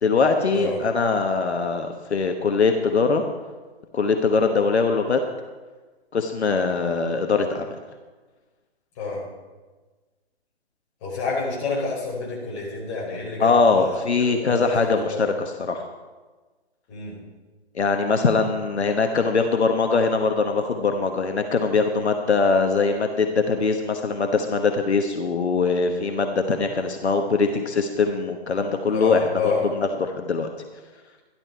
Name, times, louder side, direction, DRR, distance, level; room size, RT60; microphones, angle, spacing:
voice 1, 0.0-3.2 3.9-5.2 6.1-7.8 13.4-15.9 17.7-30.5, left 4 dB, 85° left, 5 dB, 1.3 m, -22 dB
voice 2, 11.0-13.8 14.2-15.3 16.9-17.2 28.9-29.6, left 4 dB, 30° left, -4 dB, 4.8 m, -28 dB
13.0 x 12.0 x 4.6 m, 1.3 s
hypercardioid pair, 150°, 32 cm